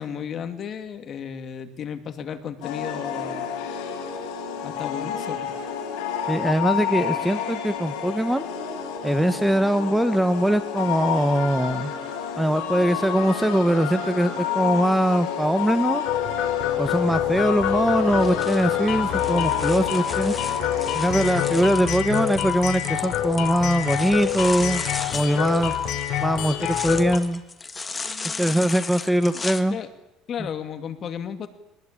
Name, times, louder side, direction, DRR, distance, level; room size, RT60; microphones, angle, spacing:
voice 1, 0.0-3.5 4.6-5.6 28.0-28.8 29.1-29.9 30.3-31.5, left 8 dB, 45° left, 8 dB, 2.5 m, -34 dB
sound 1, 2.6-21.6, left 8 dB, 85° left, 7.9 m, -30 dB
voice 2, 6.3-8.5 9.0-11.9 12.4-16.0 16.8-20.3 20.9-24.8 25.1-25.8 26.2-27.4 28.4-29.8, right 1 dB, 5° right, 11 dB, 1.4 m, -22 dB
sound 2, 16.1-27.2, left 11 dB, 60° left, 3.5 m, -26 dB
sound 3, 18.1-29.6, left 4 dB, 20° left, 1.7 m, -35 dB
23.5 x 20.0 x 8.8 m, 0.93 s
cardioid pair, 120°, 0 cm